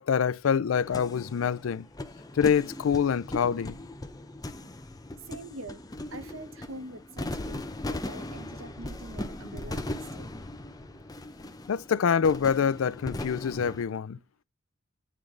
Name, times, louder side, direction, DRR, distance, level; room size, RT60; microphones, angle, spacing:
voice 1, 0.0-1.9 2.3-3.8 9.5-9.6 11.7-14.2, left 7 dB, 80° left, 0.4 m, -26 dB
sound 1, 0.8-13.8, left 1 dB, 20° left, 0.6 m, -39 dB
voice 2, 5.3-5.8 6.1-10.3, right 2 dB, 90° right, 1.3 m, -44 dB
9.2 x 3.2 x 3.8 m
head